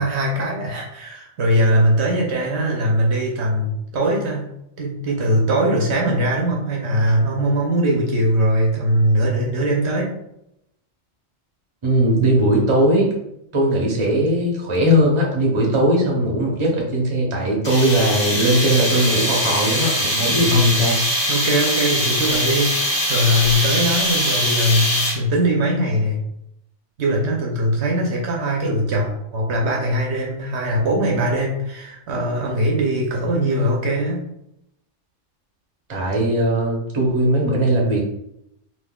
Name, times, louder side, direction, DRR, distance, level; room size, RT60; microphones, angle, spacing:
voice 1, 0.0-4.5 4.8-10.1 20.4-20.8 21.3-26.2 27.0-34.2, equal, 70° right, -1 dB, 0.9 m, -21 dB
voice 2, 11.8-13.1 13.5-21.0 35.9-38.0, right 1 dB, 30° right, -2 dB, 0.7 m, -19 dB
sound 1, 17.6-25.4, equal, 65° left, 1.6 m, -22 dB
3.5 x 2.7 x 2.3 m, 0.81 s
omnidirectional pair, 1.2 m